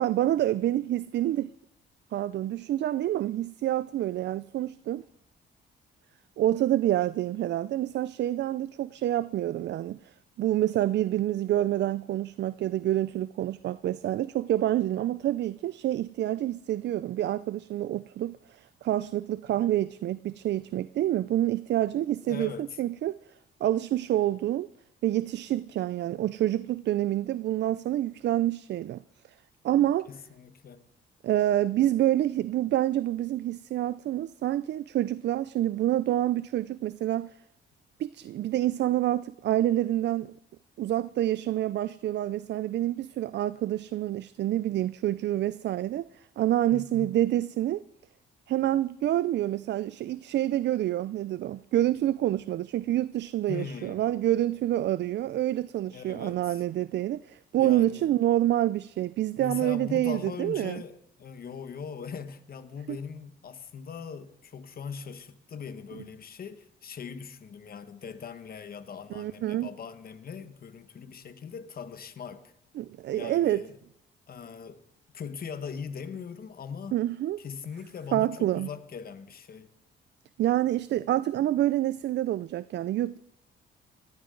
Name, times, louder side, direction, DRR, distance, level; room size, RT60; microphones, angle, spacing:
voice 1, 0.0-1.5 2.1-5.0 6.4-22.5 22.8-23.1 23.6-24.7 25.0-29.0 29.6-30.1 31.2-37.3 38.0-40.3 40.8-47.8 48.5-60.8 62.9-63.0 69.1-69.7 72.8-73.6 76.9-77.4 78.1-78.7 80.4-83.2, right 13 dB, 60° right, 0.4 m, -27 dB
voice 2, 22.3-22.7 30.1-30.8 46.7-47.1 53.5-54.1 55.9-56.6 57.6-58.1 59.4-72.5 73.1-73.8 74.3-74.8 75.1-77.0 77.4-79.7, left 6 dB, 50° left, 1.3 m, -40 dB
19.5 x 14.5 x 3.9 m
cardioid pair, 90°, 20 cm